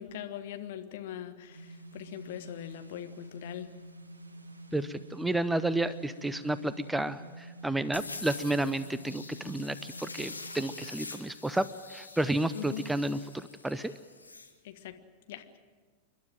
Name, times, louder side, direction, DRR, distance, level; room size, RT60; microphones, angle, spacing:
voice 1, 0.0-3.7 12.5-12.8 14.6-15.0 15.3-15.6, left 11 dB, 55° left, 8 dB, 1.5 m, -41 dB
sound 1, 1.5-10.9, right 1 dB, 80° right, 1.4 m, -48 dB
voice 2, 4.7-13.9, right 1 dB, 5° right, 16 dB, 0.6 m, -31 dB
sound 2, 7.9-14.5, left 3 dB, 80° left, 1.8 m, -45 dB
29.0 x 12.0 x 9.2 m, 1.5 s
figure-of-eight pair, 90°, 0 cm